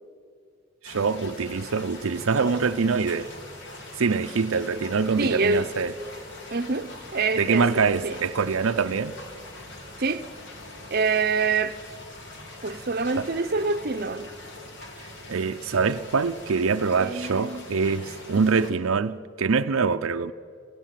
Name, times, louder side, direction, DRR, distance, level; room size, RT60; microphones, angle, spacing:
sound 1, 0.8-18.7, left 2 dB, 60° left, 3.3 m, -42 dB
voice 1, 0.8-3.3 4.0-5.9 7.4-9.2 13.2-13.3 15.3-20.3, right 5 dB, 85° right, 0.6 m, -24 dB
voice 2, 5.2-5.7 6.5-8.2 10.0-10.3 10.9-11.8 12.6-14.3 17.0-17.6 18.4-18.5, right 4 dB, 50° right, 0.8 m, -26 dB
28.0 x 16.5 x 7.5 m
head